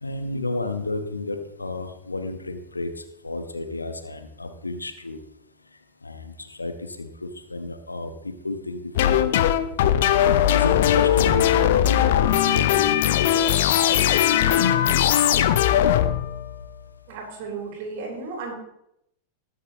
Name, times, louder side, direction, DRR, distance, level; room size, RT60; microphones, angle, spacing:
voice 1, 0.0-2.9 3.2-5.2 6.0-9.7 10.5-13.3, left 2 dB, 80° left, 7 dB, 1.2 m, -32 dB
sound 1, 9.0-16.7, left 11 dB, 55° left, 0.7 m, -19 dB
voice 2, 17.1-18.5, right 4 dB, 45° right, 0 dB, 4.0 m, -34 dB
20.0 x 7.4 x 3.1 m, 0.78 s
figure-of-eight pair, 90°, 0 cm